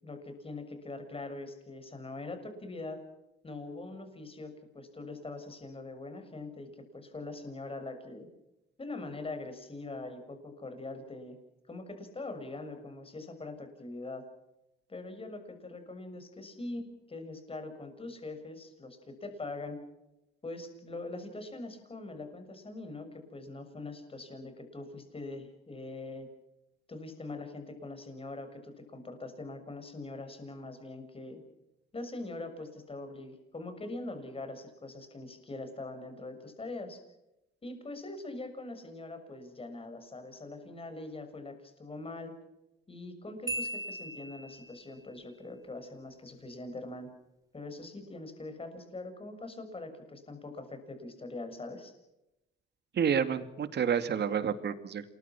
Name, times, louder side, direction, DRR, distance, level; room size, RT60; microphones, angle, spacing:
voice 1, 0.0-3.0 3.4-8.3 8.8-11.4 11.7-14.2 14.9-19.8 20.4-26.3 26.9-31.4 31.9-37.0 37.6-42.3 42.9-47.1 47.5-51.9, left 2 dB, 30° left, 7 dB, 6.6 m, -42 dB
Marimba xylophone, 43.5-44.9, right 1 dB, 15° right, 3.6 m, -38 dB
voice 2, 52.9-55.0, right 7 dB, 60° right, 10 dB, 2.5 m, -29 dB
28.0 x 21.5 x 6.1 m, 0.92 s
cardioid pair, 90°, 20 cm